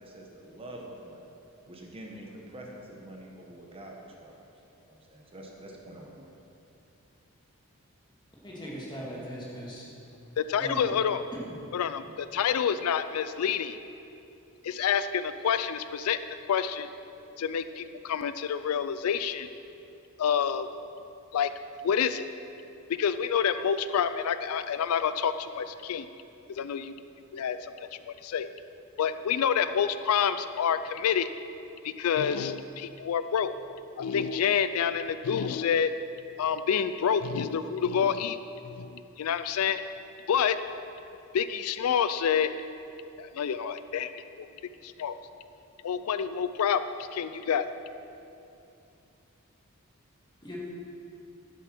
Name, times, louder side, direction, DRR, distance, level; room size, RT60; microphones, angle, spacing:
voice 1, 0.0-1.3 1.7-4.5 4.8-6.3, right 1 dB, 25° right, -1 dB, 1.2 m, -46 dB
voice 2, 8.4-9.9 10.6-11.0 11.3-11.4 50.4-50.6, equal, 20° left, -5 dB, 2.3 m, -39 dB
voice 3, 10.4-11.2 11.7-13.8 14.6-16.2 16.5-16.9 17.4-19.5 20.2-20.7 21.3-21.5 21.8-22.3 23.0-26.1 26.5-27.0 27.3-27.7 28.1-28.5 29.0-31.3 31.8-33.5 34.0-35.9 36.4-38.4 38.6-39.8 40.3-40.6 41.3-42.5 43.2-44.5 44.8-45.2 45.8-47.7, left 7 dB, 80° left, 12 dB, 0.4 m, -28 dB
11.0 x 7.7 x 6.0 m, 2.8 s
head